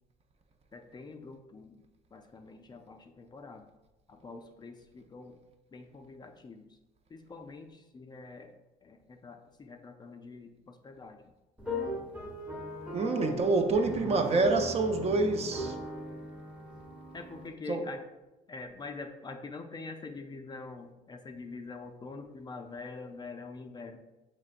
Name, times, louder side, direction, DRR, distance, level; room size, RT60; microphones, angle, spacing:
voice 1, 0.7-1.8 2.1-3.7 4.1-5.4 5.7-6.7 7.1-8.5 8.8-11.3 17.1-18.0 18.5-24.0, left 3 dB, 25° left, 0.4 m, -45 dB
sound 1, 11.6-17.5, equal, 5° right, 0.9 m, -39 dB
voice 2, 12.9-15.8 17.7-17.8, right 3 dB, 40° right, 0.5 m, -27 dB
6.5 x 3.2 x 2.5 m
cardioid pair, 110°, 17 cm